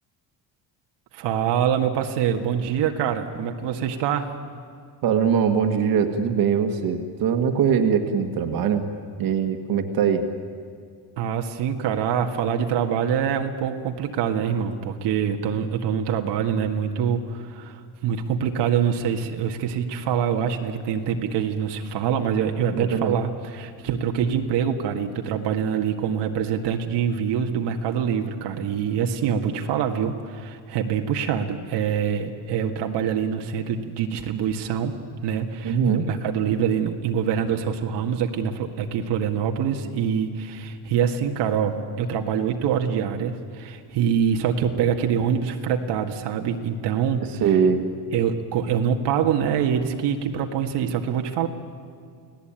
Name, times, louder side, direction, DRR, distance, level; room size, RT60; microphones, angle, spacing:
voice 1, 1.1-4.3 11.2-34.9 35.2-35.8 36.1-47.2 48.1-51.5, right 8 dB, 85° right, 3 dB, 1.9 m, -25 dB
voice 2, 5.0-8.8 9.2-10.2 22.7-23.2 35.6-36.1 47.4-47.9, right 7 dB, 55° right, 6 dB, 1.8 m, -22 dB
29.5 x 18.0 x 9.0 m, 2.3 s
cardioid pair, 175°, 40 cm